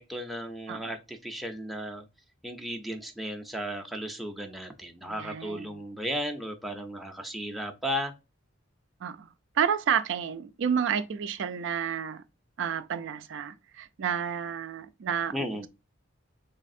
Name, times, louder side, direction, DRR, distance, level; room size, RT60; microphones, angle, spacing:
voice 1, 0.0-2.0 2.4-8.1 15.3-15.7, equal, ahead, 0.5 m, -35 dB
voice 2, 5.0-5.8 9.0-9.3 9.6-12.2 12.6-15.7, right 7 dB, 65° right, 0.4 m, -30 dB
4.0 x 3.3 x 2.5 m
head